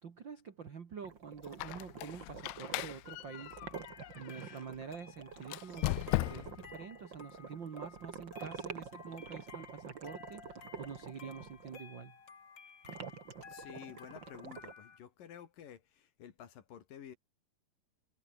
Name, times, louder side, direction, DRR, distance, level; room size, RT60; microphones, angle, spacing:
voice 1, 0.0-3.6 4.1-12.2, right 6 dB, 75° right, 1.0 m, -47 dB
sound 1, 1.0-11.8 12.8-14.7, right 6 dB, 40° right, 1.9 m, -48 dB
Squeak, 1.4-4.6 5.4-6.7, left 21 dB, 80° left, 2.4 m, -38 dB
sound 2, 3.3-15.0, left 6 dB, 35° left, 1.9 m, -55 dB
voice 2, 13.5-17.2, left 9 dB, 60° left, 3.3 m, -51 dB
omnidirectional pair, 5.0 m